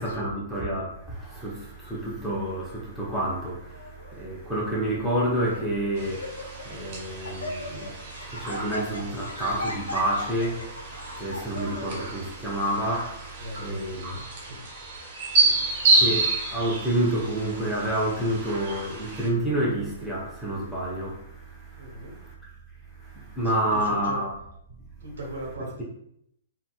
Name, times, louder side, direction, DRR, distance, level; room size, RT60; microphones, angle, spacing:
voice 1, 0.0-14.1 15.4-22.3 23.0-24.3, right 1 dB, 5° left, 0.9 m, -29 dB
Laughter, 3.7-4.1 4.9-5.0 5.5-5.7 6.0-6.8 7.0-12.0, left 2 dB, 80° left, 0.6 m, -38 dB
sound 1, 6.0-19.3, right 3 dB, 45° right, 0.9 m, -29 dB
voice 2, 13.4-14.7 21.8-22.2 23.4-24.2 25.0-25.8, right 1 dB, 65° right, 1.0 m, -38 dB
3.9 x 2.2 x 2.3 m
figure-of-eight pair, 115°, 0 cm